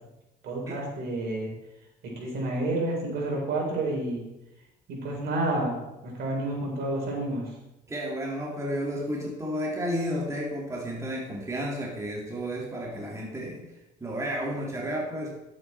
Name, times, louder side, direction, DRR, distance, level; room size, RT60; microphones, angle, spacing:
voice 1, 0.4-1.5 2.2-4.2 4.9-5.8 6.0-7.5, right 2 dB, 65° right, -1 dB, 4.3 m, -29 dB
voice 2, 7.9-13.7 14.0-15.3, equal, 15° right, -3 dB, 2.4 m, -32 dB
11.0 x 8.7 x 4.4 m, 0.94 s
cardioid pair, 110°, 17 cm